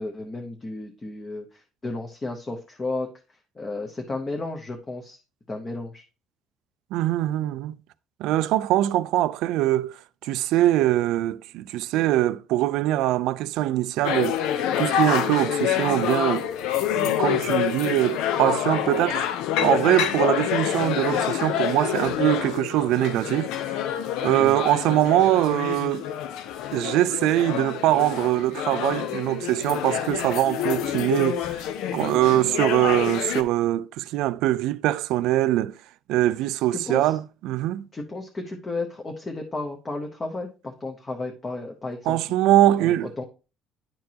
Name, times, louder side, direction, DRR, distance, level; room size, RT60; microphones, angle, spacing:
voice 1, 0.0-3.1 3.6-5.2 5.5-6.0 24.4-24.6 32.3-32.6 36.7-37.1 37.9-42.2 42.8-43.2, left 2 dB, 20° left, 0.8 m, -33 dB
voice 2, 6.9-7.8 8.2-14.4 14.8-16.5 17.0-19.3 19.6-23.9 24.2-26.1 26.7-31.6 31.9-35.7 36.1-37.8 42.1-43.1, right 14 dB, 75° right, 0.4 m, -23 dB
sound 1, 14.0-33.4, left 10 dB, 85° left, 0.6 m, -27 dB
10.5 x 4.5 x 2.8 m
cardioid pair, 160°, 0 cm